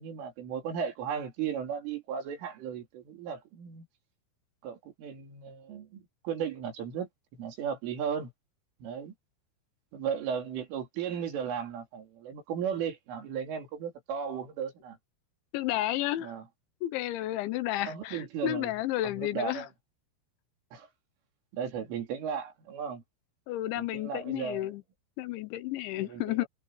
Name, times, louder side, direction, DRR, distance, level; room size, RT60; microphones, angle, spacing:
voice 1, 0.0-3.9 4.6-8.3 8.8-9.1 9.9-15.0 16.2-16.4 17.9-18.7 19.0-19.7 20.7-20.9 21.5-23.0 23.8-24.7 25.9-26.5, right 7 dB, 70° right, 5.8 m, -35 dB
voice 2, 15.5-16.3 16.8-19.6 23.5-24.8 25.2-26.5, left 15 dB, 75° left, 3.1 m, -32 dB
omnidirectional pair, 6.0 m